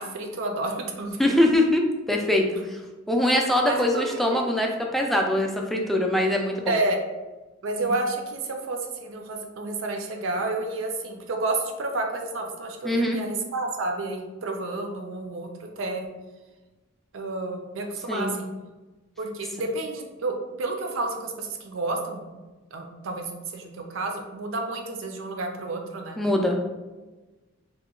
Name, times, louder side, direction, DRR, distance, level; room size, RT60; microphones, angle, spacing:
voice 1, 0.0-1.4 3.6-4.4 6.7-7.0 7.6-16.1 17.1-18.5 19.2-22.3 22.7-26.2, right 2 dB, 80° right, 3 dB, 0.5 m, -30 dB
voice 2, 1.2-1.8 2.1-2.8 3.1-6.7 12.8-13.2 18.1-18.3 26.2-26.6, left 1 dB, ahead, 1 dB, 0.3 m, -23 dB
2.9 x 2.2 x 3.6 m, 1.2 s
head